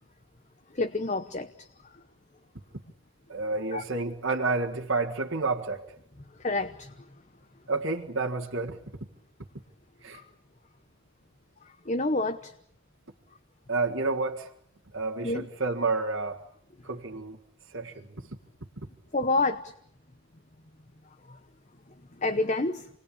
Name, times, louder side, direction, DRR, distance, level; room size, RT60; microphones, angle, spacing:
voice 1, 0.7-1.9 3.7-3.8 6.4-6.9 10.1-10.2 11.8-12.5 15.2-15.5 19.1-19.7 21.3-21.4 22.2-22.9, left 2 dB, 35° left, 9 dB, 1.0 m, -28 dB
voice 2, 3.3-6.0 7.7-8.8 10.0-10.2 13.7-14.5 14.9-16.4 16.8-17.4 17.7-18.2 18.8-18.9, right 3 dB, 60° right, 0 dB, 1.8 m, -30 dB
29.5 x 20.5 x 8.6 m, 0.73 s
head